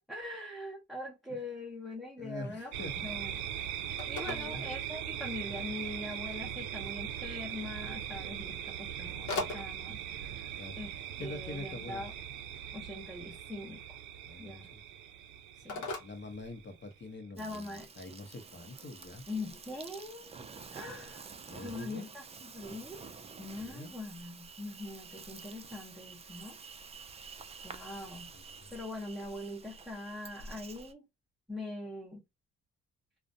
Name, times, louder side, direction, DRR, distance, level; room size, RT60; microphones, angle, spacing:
voice 1, 0.0-2.7 3.0-3.4 4.1-12.1 12.7-13.8 14.4-14.7 15.5-15.9 17.4-17.9 19.3-20.3 20.7-21.3 21.6-23.0 23.4-26.6 27.6-28.3 28.7-31.0 31.5-32.2, left 2 dB, ahead, 0.7 m, -42 dB
voice 2, 2.2-3.1 4.2-4.7 10.6-10.8 11.2-12.0 14.2-14.8 16.0-19.2 21.5-22.1 23.6-23.9 28.3-28.7, left 2 dB, 35° left, 0.8 m, -45 dB
Telephone, 2.6-17.1, left 3 dB, 75° left, 0.8 m, -46 dB
sound 1, 2.7-17.0, right 10 dB, 80° right, 0.5 m, -40 dB
Insect, 17.4-30.9, right 4 dB, 20° right, 0.3 m, -49 dB
2.4 x 2.1 x 2.6 m
cardioid pair, 90°, 30 cm